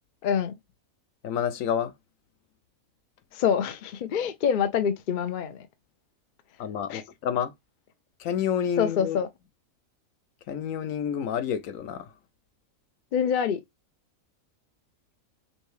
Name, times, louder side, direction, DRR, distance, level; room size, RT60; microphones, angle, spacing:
voice 1, 0.2-0.5 3.3-5.6 6.9-7.0 8.8-9.3 13.1-13.6, left 7 dB, 55° left, 0.6 m, -26 dB
voice 2, 1.2-1.9 6.6-7.5 8.2-9.2 10.5-12.1, left 8 dB, 75° left, 1.0 m, -29 dB
5.3 x 2.3 x 3.2 m
omnidirectional pair, 1.4 m